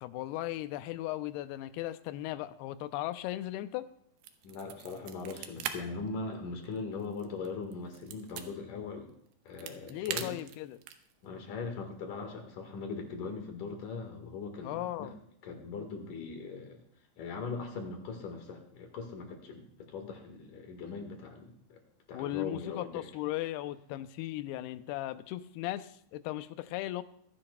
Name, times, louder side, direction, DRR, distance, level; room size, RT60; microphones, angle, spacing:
voice 1, 0.0-3.9 9.9-10.8 14.6-15.2 22.1-27.0, left 15 dB, 85° left, 12 dB, 2.6 m, -37 dB
sound 1, 4.2-5.7 6.1-6.2 6.6-8.5 9.3-11.1, right 10 dB, 85° right, 2.9 m, -40 dB
voice 2, 4.4-9.1 9.5-10.4 11.2-15.1 15.4-16.8 17.2-21.8 22.1-23.0, left 4 dB, 60° left, 4 dB, 2.8 m, -40 dB
23.5 x 10.0 x 2.2 m, 0.68 s
omnidirectional pair, 4.5 m